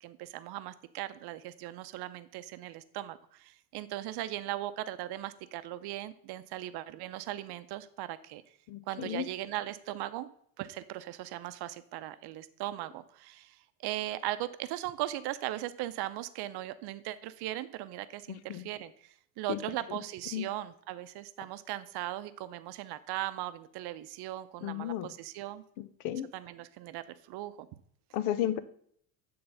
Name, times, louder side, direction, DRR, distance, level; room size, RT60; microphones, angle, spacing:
voice 1, 0.0-8.4 8.9-10.3 10.6-25.6 26.3-27.7, right 14 dB, 50° right, 13 dB, 0.7 m, -38 dB
voice 2, 8.7-9.3 18.5-18.7 19.5-19.6 20.3-20.5 24.6-25.1 26.0-26.3 28.1-28.6, left 11 dB, 65° left, 15 dB, 0.8 m, -32 dB
8.7 x 3.8 x 5.5 m, 0.66 s
supercardioid pair, 100°, 49 cm